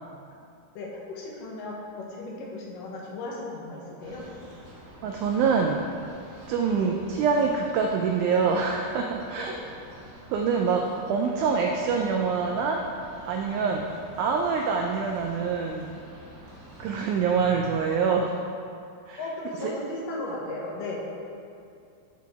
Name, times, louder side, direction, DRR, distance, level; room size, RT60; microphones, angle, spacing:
voice 1, 0.8-4.2 6.8-6.9 9.5-9.6 13.6-13.8 19.2-21.0, left 2 dB, 75° left, -3 dB, 2.7 m, -36 dB
sound 1, 4.0-18.0, equal, 45° right, 1.3 m, -48 dB
voice 2, 5.0-5.9 6.5-9.5 10.3-12.8 13.3-13.8 14.2-16.0 16.8-18.4 19.1-19.2 19.6-19.7, right 5 dB, 85° right, 2 dB, 1.7 m, -25 dB
10.5 x 4.2 x 4.2 m, 2.5 s
omnidirectional pair, 4.0 m